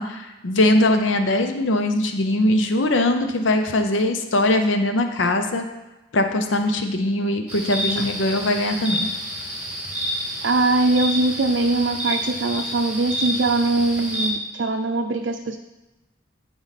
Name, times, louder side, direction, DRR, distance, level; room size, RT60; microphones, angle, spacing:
voice 1, 0.0-5.7 6.1-9.1, left 1 dB, 75° left, 6 dB, 0.7 m, -21 dB
sound 1, 7.5-14.3, equal, 5° right, 2.1 m, -29 dB
voice 2, 10.4-15.6, right 2 dB, 65° right, 3 dB, 0.5 m, -22 dB
14.0 x 4.8 x 4.2 m, 1.1 s
head